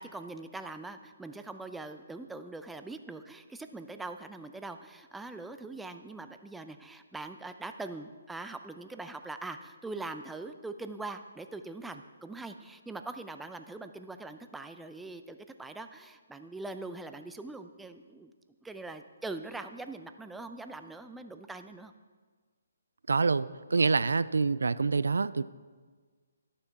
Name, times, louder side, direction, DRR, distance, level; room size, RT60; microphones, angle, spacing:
voice 1, 0.0-18.3 18.6-21.9, right 3 dB, 5° right, 8 dB, 0.4 m, -42 dB
voice 2, 23.1-25.4, right 4 dB, 75° right, 16 dB, 0.3 m, -26 dB
12.0 x 6.7 x 4.6 m, 1.5 s
figure-of-eight pair, 140°, 0 cm